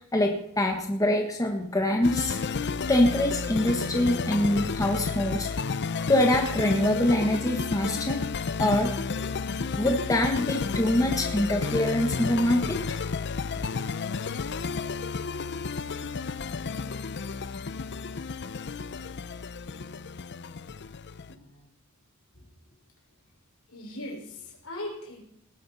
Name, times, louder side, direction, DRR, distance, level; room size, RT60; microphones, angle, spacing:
voice 1, 0.1-5.5 6.1-8.2 8.6-8.9 9.7-12.8, left 1 dB, 15° left, 2 dB, 1.4 m, -25 dB
sound 1, 2.0-21.3, left 4 dB, 50° left, 0.6 m, -32 dB
voice 2, 21.2-21.7 22.3-22.5 23.7-25.2, left 1 dB, 70° left, 0 dB, 5.1 m, -40 dB
18.0 x 11.5 x 4.2 m, 0.72 s
head